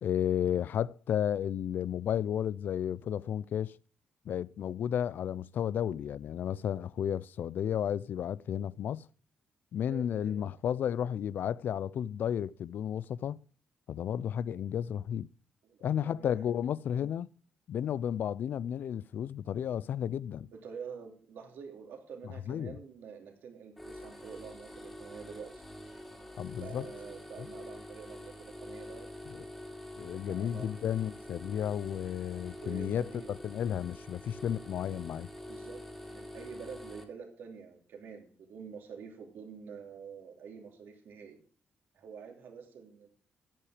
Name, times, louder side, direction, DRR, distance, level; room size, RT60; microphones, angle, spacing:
voice 1, 0.0-3.7 4.3-9.1 9.7-13.4 13.9-15.3 15.8-17.3 17.7-20.5 22.5-22.8 26.4-26.9 27.4-27.5 29.3-29.5 30.0-35.3, left 9 dB, 65° left, 0.4 m, -33 dB
voice 2, 9.9-10.5 15.6-15.9 16.2-16.5 20.5-25.6 26.6-29.1 30.2-31.1 32.6-33.3 35.5-41.4 41.9-43.1, right 6 dB, 75° right, 3.0 m, -47 dB
sound 1, 23.8-37.0, left 1 dB, 5° left, 2.5 m, -46 dB
13.5 x 8.6 x 5.0 m
cardioid pair, 95°, 3 cm